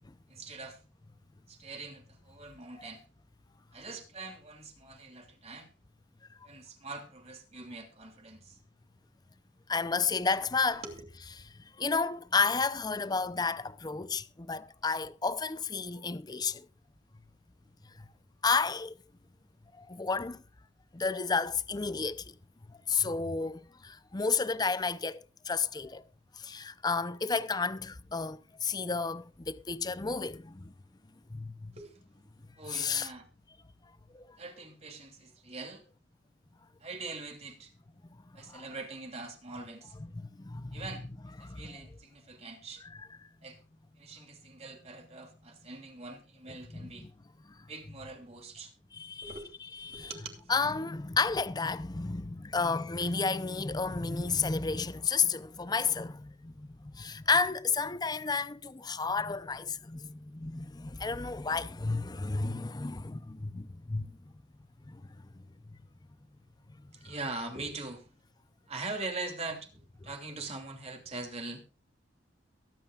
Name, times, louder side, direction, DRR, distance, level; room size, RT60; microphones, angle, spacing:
voice 1, 0.3-0.8 1.5-3.0 3.7-5.7 6.4-8.6 10.8-11.0 31.7-31.9 32.6-33.2 34.4-35.8 36.8-37.7 38.3-40.0 40.7-41.1 41.4-42.8 43.4-43.6 44.0-47.1 47.7-48.7 49.2-50.6 66.9-68.1 68.7-71.6, right 3 dB, 35° right, 2.8 m, -43 dB
voice 2, 9.7-10.8 11.8-16.7 18.0-18.1 18.4-19.0 19.8-20.4 20.9-22.3 22.7-26.0 26.3-30.7 31.3-31.7 32.7-33.1 34.1-34.4 38.5-38.6 40.1-40.8 41.4-41.8 42.8-43.1 46.7-47.1 47.5-47.6 48.9-49.4 49.7-50.1 50.5-64.2 64.9-65.3, left 4 dB, 20° left, 0.6 m, -32 dB
23.0 x 9.2 x 2.4 m
head